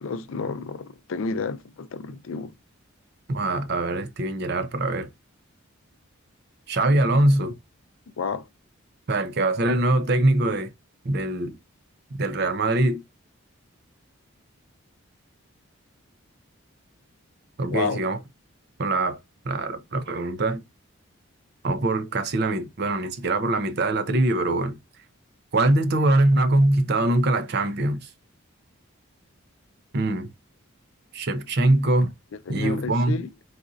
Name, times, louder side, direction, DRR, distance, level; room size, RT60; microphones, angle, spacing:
voice 1, 0.0-2.5 8.2-8.5 17.7-18.0 32.5-33.3, left 4 dB, 70° left, 0.4 m, -30 dB
voice 2, 3.3-5.1 6.7-7.6 9.1-10.7 11.0-11.6 12.1-13.0 17.6-18.2 18.8-19.2 19.4-20.7 21.6-24.8 25.5-28.1 29.9-30.3 31.1-32.1 32.5-33.2, right 2 dB, 50° right, 0.6 m, -23 dB
4.1 x 2.6 x 2.4 m
head